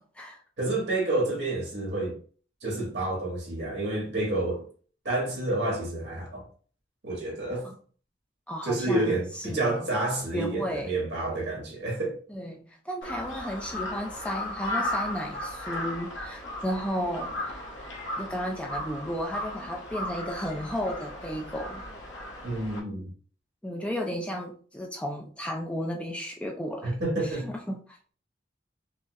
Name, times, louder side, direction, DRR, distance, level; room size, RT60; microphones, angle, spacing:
voice 1, 0.6-2.2 2.6-4.7 5.0-6.5 7.0-7.7 8.6-12.2 22.4-23.1 26.8-27.5, right 2 dB, 70° right, 1.6 m, -29 dB
voice 2, 8.5-9.9 10.3-10.9 12.3-17.6 18.2-21.8 23.6-28.1, equal, 5° left, 0.3 m, -34 dB
Crow, 13.0-22.8, left 1 dB, 80° left, 0.9 m, -36 dB
5.1 x 2.0 x 2.4 m
head